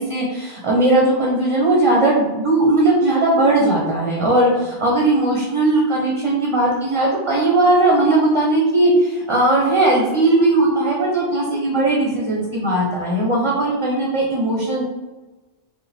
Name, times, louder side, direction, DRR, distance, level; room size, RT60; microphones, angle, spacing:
voice 1, 0.0-14.8, right 2 dB, 35° right, -3 dB, 0.6 m, -18 dB
4.8 x 2.1 x 3.3 m, 1.2 s
omnidirectional pair, 1.1 m